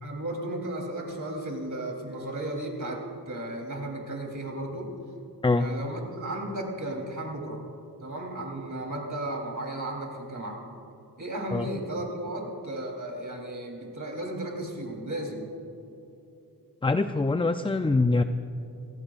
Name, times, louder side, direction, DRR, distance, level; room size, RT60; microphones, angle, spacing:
voice 1, 0.0-4.9 5.6-7.6 8.0-10.6 11.2-15.5, right 1 dB, 50° right, 0 dB, 3.5 m, -34 dB
voice 2, 16.8-18.2, left 3 dB, 15° left, 8 dB, 0.5 m, -24 dB
25.5 x 16.5 x 2.5 m, 2.9 s
wide cardioid pair, 65°, 41 cm